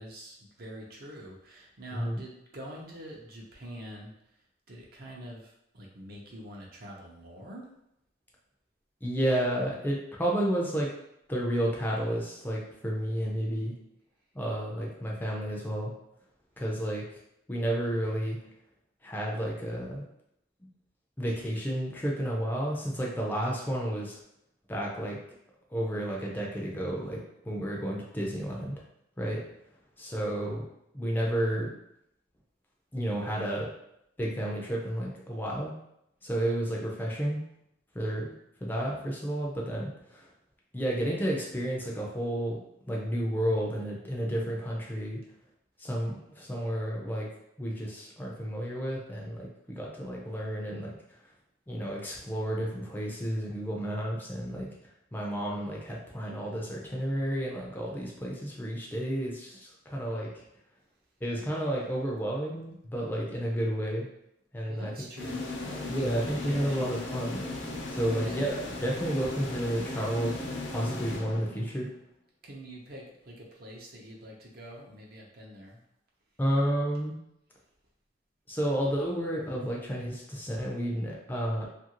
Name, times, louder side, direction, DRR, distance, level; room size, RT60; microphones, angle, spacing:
voice 1, 0.0-4.1 4.7-7.7 64.7-67.0 67.7-68.4 72.4-75.8 76.6-76.7, right 1 dB, 55° right, -1 dB, 0.7 m, -45 dB
voice 2, 1.9-2.2 9.0-10.9 11.3-13.8 14.3-16.0 16.6-17.0 17.5-18.4 19.0-20.1 21.2-24.2 24.7-25.2 25.7-28.8 29.2-29.4 30.0-30.7 30.9-31.7 32.9-33.7 34.2-35.7 36.2-37.4 37.9-38.3 38.6-40.3 40.7-42.6 42.9-45.2 45.8-47.3 47.6-50.9 51.7-54.7 55.1-60.4 61.2-64.1 64.5-65.1 65.9-67.4 67.9-70.3 70.7-71.9 76.4-77.1 78.5-81.7, right 1 dB, 10° left, -3 dB, 0.4 m, -31 dB
sound 1, 65.2-71.9, left 2 dB, 80° left, 0.6 m, -37 dB
2.7 x 2.5 x 2.9 m, 0.78 s
head